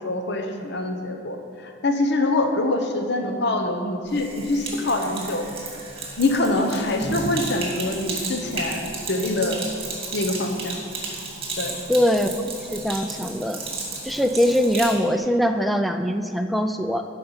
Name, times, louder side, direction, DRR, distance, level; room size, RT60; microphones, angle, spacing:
voice 1, 0.0-1.4 1.6-5.4 6.2-9.6 10.1-10.8 11.6-11.8, left 2 dB, 55° left, 4 dB, 0.9 m, -24 dB
Sink (filling or washing), 4.1-15.0, right 3 dB, 25° right, 2.2 m, -33 dB
voice 2, 11.9-13.6 14.0-17.1, equal, ahead, 6 dB, 0.4 m, -22 dB
13.5 x 5.6 x 5.7 m, 2.4 s
head